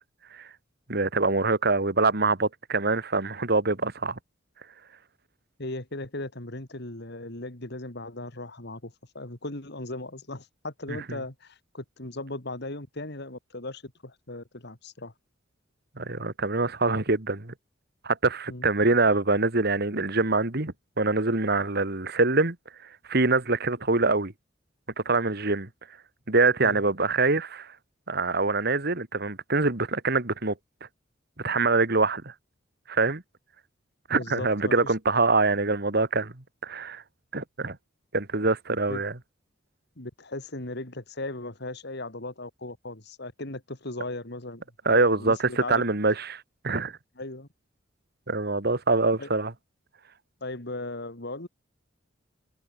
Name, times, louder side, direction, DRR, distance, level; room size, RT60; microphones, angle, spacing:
voice 1, 0.9-4.2 10.9-11.0 16.0-17.5 18.0-22.6 23.1-24.3 25.1-25.7 26.3-27.7 28.1-30.5 31.4-32.3 32.9-33.2 34.1-37.0 37.3-37.8 38.1-39.1 44.9-47.0 48.3-49.5, right 3 dB, 55° right, 2.3 m, -24 dB
voice 2, 5.6-15.1 18.5-18.7 26.6-26.8 34.1-35.3 38.9-39.0 40.0-44.6 44.9-45.9 47.2-47.5 49.2-49.3 50.4-51.5, left 2 dB, 60° left, 3.0 m, -37 dB
head